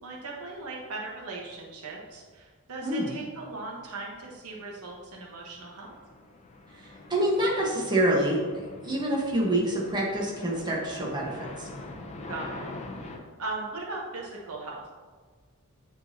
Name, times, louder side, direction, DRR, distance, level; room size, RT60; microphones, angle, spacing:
voice 1, 0.0-5.9 12.3-13.1 13.4-14.9, right 3 dB, 85° right, -2 dB, 1.1 m, -38 dB
voice 2, 2.8-3.1 6.8-11.7, right 1 dB, 20° right, -4 dB, 1.2 m, -27 dB
sound 1, 5.4-13.2, left 2 dB, 30° left, 0.6 m, -44 dB
9.1 x 3.8 x 2.8 m, 1.5 s
head